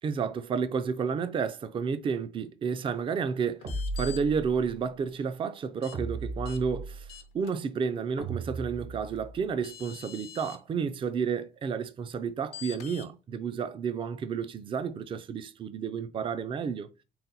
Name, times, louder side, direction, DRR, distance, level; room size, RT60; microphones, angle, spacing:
voice 1, 0.0-7.1 7.3-16.9, right 6 dB, 30° right, 0.4 m, -31 dB
sound 1, 3.6-4.2 5.8-6.0 6.4-6.6 7.1-7.5 9.2-9.3 9.6-10.6 12.5-13.1, left 10 dB, 75° left, 0.6 m, -45 dB
sound 2, 3.6-4.7 5.9-7.2 8.2-9.4, right 2 dB, 75° right, 1.6 m, -36 dB
4.1 x 2.1 x 3.9 m
cardioid pair, 110°, 17 cm